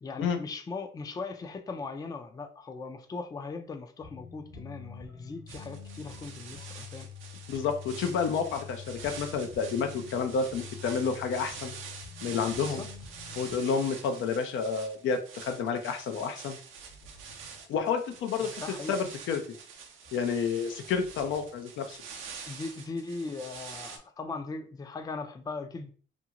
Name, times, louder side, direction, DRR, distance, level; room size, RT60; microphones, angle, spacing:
voice 1, 0.0-7.1 12.5-12.9 18.4-19.0 22.5-25.9, left 4 dB, 20° left, 7 dB, 0.3 m, -39 dB
sound 1, 4.0-14.2 14.5-14.8 15.0-15.1 15.6-18.2 18.6-19.1 19.5-19.6 20.0-22.0, left 6 dB, 50° left, 1.0 m, -47 dB
sound 2, 5.5-24.0, right 6 dB, 90° right, 0.5 m, -46 dB
voice 2, 7.5-11.7 12.2-12.8 13.4-16.6 17.7-19.4 20.1-22.0, left 6 dB, 80° left, 6 dB, 0.5 m, -30 dB
2.6 x 2.3 x 2.8 m, 0.42 s
cardioid pair, 90°, 20 cm